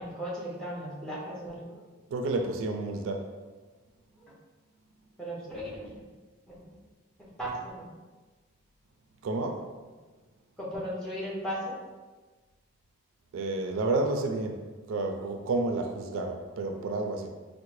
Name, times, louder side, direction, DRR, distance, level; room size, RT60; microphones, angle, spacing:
voice 1, 0.0-1.8 4.2-4.3 5.2-6.0 6.5-6.8 7.2-7.9 10.6-11.8, equal, 5° left, -7 dB, 0.6 m, -37 dB
voice 2, 2.1-3.3 9.2-9.7 13.3-17.3, right 2 dB, 80° right, 4 dB, 0.3 m, -30 dB
3.5 x 2.0 x 3.1 m, 1.3 s
head